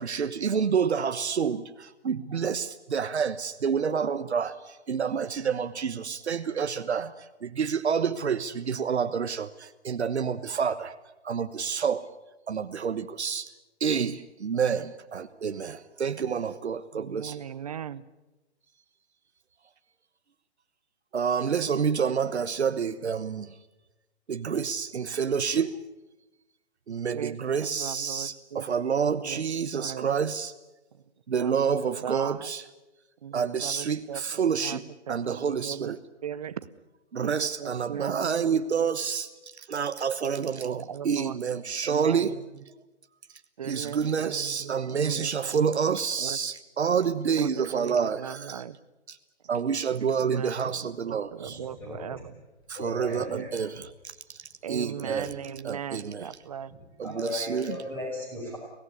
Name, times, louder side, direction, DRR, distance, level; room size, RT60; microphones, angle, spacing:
voice 1, 0.0-10.9 11.2-12.0 12.5-13.5 13.8-17.4 21.1-23.5 24.3-25.8 26.9-30.5 31.3-32.6 33.3-34.8 35.1-36.0 37.1-42.4 43.6-48.6 49.1-49.2 49.5-51.6 52.7-53.8 54.3-55.3 55.6-56.3 57.0-57.8, right 6 dB, 75° right, 9 dB, 1.2 m, -28 dB
voice 2, 16.9-18.0 27.1-28.7 29.1-29.4 29.7-30.1 30.9-31.0 31.4-31.6 32.0-32.5 33.2-36.6 37.2-38.4 40.4-41.4 41.8-42.4 43.6-45.7 46.2-46.4 47.4-48.8 49.7-49.9 50.2-52.4 53.3-53.5 53.8-53.9 54.6-56.7, right 8 dB, 35° right, 15 dB, 0.9 m, -39 dB
voice 3, 51.8-52.2 52.7-53.5 54.9-55.2 56.7-56.8 57.0-58.6, left 2 dB, 5° left, -1 dB, 5.8 m, -36 dB
24.5 x 18.0 x 9.9 m, 1.0 s
hypercardioid pair, 165°, 34 cm